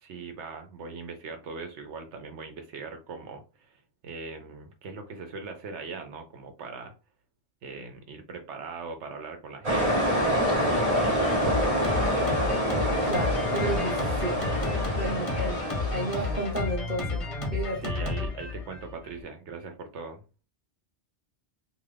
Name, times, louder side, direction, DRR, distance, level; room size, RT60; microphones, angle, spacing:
voice 1, 0.0-6.9 7.6-10.7 11.0-12.5 12.8-13.1 15.1-15.2 17.8-20.4, right 4 dB, 85° right, 1.0 m, -41 dB
sound 1, 9.6-16.7, equal, 35° right, 0.9 m, -27 dB
Drum kit, 11.4-19.2, left 3 dB, 35° left, 0.7 m, -32 dB
voice 2, 13.0-15.6 15.9-17.2 17.5-17.9, right 1 dB, 10° right, 0.7 m, -33 dB
2.6 x 2.5 x 3.3 m
omnidirectional pair, 1.2 m